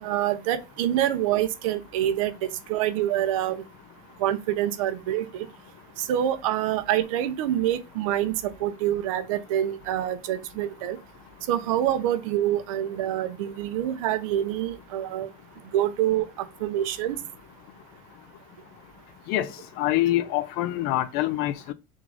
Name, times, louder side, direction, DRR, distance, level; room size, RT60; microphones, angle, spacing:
voice 1, 0.0-3.6 4.2-5.5 6.0-11.0 11.5-15.3 15.7-17.2, right 12 dB, 90° right, 0.6 m, -26 dB
voice 2, 19.8-21.7, left 14 dB, 65° left, 0.5 m, -25 dB
3.7 x 2.4 x 4.6 m
supercardioid pair, 115°, 17 cm